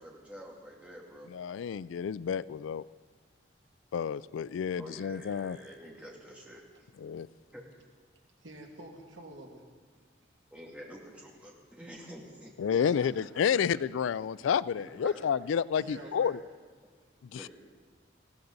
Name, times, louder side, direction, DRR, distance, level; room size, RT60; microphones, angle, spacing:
voice 1, 0.0-1.3 4.8-6.9 7.5-7.8 10.5-12.9 14.8-15.2 15.7-16.4 17.3-17.5, equal, 5° right, -3 dB, 2.3 m, -48 dB
voice 2, 1.3-2.8 3.9-5.6 7.0-7.3 12.6-16.3 17.3-17.4, left 7 dB, 85° left, 19 dB, 0.3 m, -30 dB
voice 3, 8.4-9.6 12.1-12.2 12.6-13.6 15.8-16.4, right 1 dB, 85° right, 1 dB, 2.1 m, -49 dB
20.0 x 15.5 x 4.0 m, 1.5 s
head